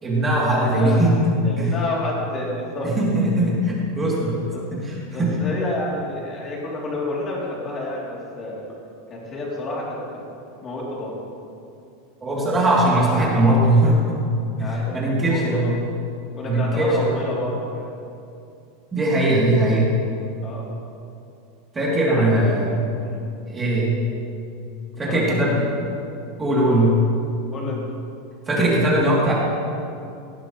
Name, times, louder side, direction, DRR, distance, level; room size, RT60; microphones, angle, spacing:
voice 1, 0.0-1.7 2.8-4.4 4.7-5.3 12.2-14.0 14.6-15.7 16.4-17.2 18.9-19.9 21.7-22.8 23.5-24.0 25.0-25.7 26.4-26.9 28.5-29.3, right 1 dB, 15° right, -6 dB, 3.3 m, -20 dB
voice 2, 0.6-1.0 1.4-2.9 4.2-4.7 5.1-8.7 9.1-10.0 10.6-11.2 14.6-15.7 16.4-17.9 20.4-20.7 22.1-23.2 25.0-25.7 26.6-26.9 27.5-27.8, left 2 dB, 25° left, -5 dB, 3.4 m, -30 dB
17.0 x 12.0 x 3.3 m, 2.6 s
supercardioid pair, 155°, 0 cm